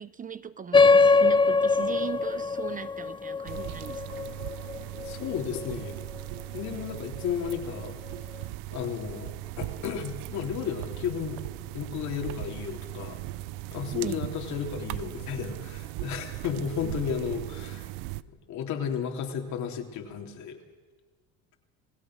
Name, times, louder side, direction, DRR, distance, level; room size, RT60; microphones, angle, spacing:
voice 1, 0.0-4.0 13.9-14.2 16.8-17.0, right 7 dB, 25° right, 14 dB, 0.7 m, -38 dB
sound 1, 0.7-5.7, left 4 dB, 15° left, 0.6 m, -23 dB
sound 2, 3.5-18.2, right 16 dB, 80° right, 0.7 m, -38 dB
voice 2, 5.0-6.0 6.5-8.0 8.7-11.4 11.7-13.2 13.7-17.9 18.3-20.6, left 7 dB, 60° left, 3 dB, 3.6 m, -33 dB
28.0 x 17.0 x 6.4 m, 1.4 s
supercardioid pair, 105°, 32 cm